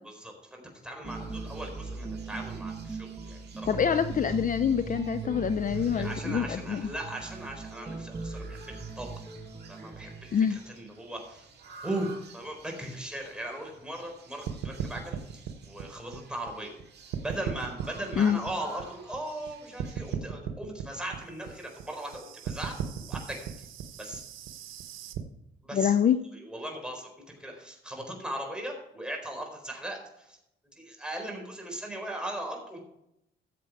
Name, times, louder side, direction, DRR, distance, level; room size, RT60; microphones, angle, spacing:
voice 1, 0.0-3.9 5.8-9.1 9.7-11.5 11.8-16.7 17.2-23.5 24.0-24.2 25.6-25.9 26.3-30.4 30.8-32.8, right 1 dB, 5° right, 1 dB, 4.3 m, -38 dB
sound 1, 1.0-10.6, right 4 dB, 25° right, 1.4 m, -39 dB
sound 2, 1.0-20.2, right 5 dB, 55° right, 2.6 m, -53 dB
voice 2, 3.7-6.9 10.3-10.6 18.2-18.4 25.7-26.2, left 8 dB, 40° left, 11 dB, 0.6 m, -26 dB
sound 3, 14.5-16.8 17.1-19.5 19.8-25.2, right 9 dB, 85° right, 1.2 m, -37 dB
14.0 x 7.6 x 4.8 m, 0.81 s
cardioid pair, 90°, 20 cm